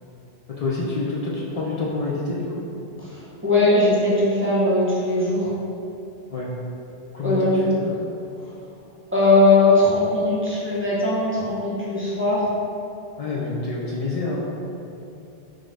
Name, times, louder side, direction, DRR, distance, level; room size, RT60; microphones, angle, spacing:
voice 1, 0.5-2.6 6.3-6.5 7.1-7.9 13.2-14.4, left 3 dB, 55° left, -5 dB, 0.4 m, -27 dB
voice 2, 3.1-5.5 7.2-7.9 9.1-12.5, left 2 dB, 15° right, -9 dB, 0.5 m, -19 dB
3.5 x 2.5 x 3.2 m, 2.7 s
omnidirectional pair, 1.0 m